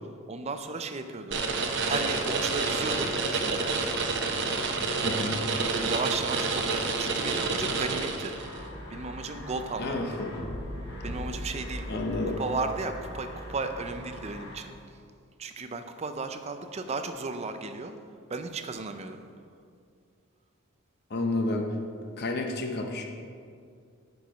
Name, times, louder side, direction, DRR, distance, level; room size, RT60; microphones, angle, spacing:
voice 1, 0.3-1.4 1.8-3.7 5.7-8.3 8.9-10.0 11.0-12.0 12.4-14.7 15.4-17.9 18.3-19.2, right 3 dB, 30° right, 8 dB, 0.4 m, -34 dB
sound 1, 1.3-8.6, right 3 dB, 55° right, 0.8 m, -28 dB
voice 2, 5.0-5.4 9.8-10.3 11.9-12.4 21.1-21.7 22.2-23.1, left 2 dB, 50° left, 3 dB, 0.7 m, -30 dB
sound 2, 8.3-14.6, equal, 70° left, 2.1 m, -40 dB
9.2 x 4.6 x 5.1 m, 2.3 s
head